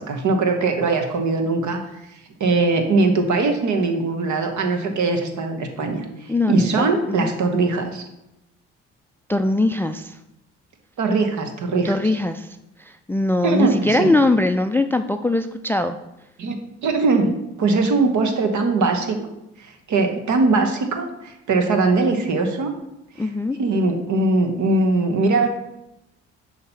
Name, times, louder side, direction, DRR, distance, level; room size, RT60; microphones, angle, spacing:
voice 1, 0.0-1.8 2.4-8.0 11.0-11.9 13.4-14.1 16.4-17.3 17.6-19.2 19.6-22.7 23.2-23.3 23.6-25.5, right 3 dB, 60° right, 5 dB, 1.1 m, -21 dB
voice 2, 6.3-7.3 9.3-10.2 11.8-12.5 12.8-16.0 23.2-23.6, left 2 dB, 5° left, 9 dB, 0.3 m, -21 dB
6.3 x 2.9 x 5.5 m, 0.88 s
supercardioid pair, 55°, 32 cm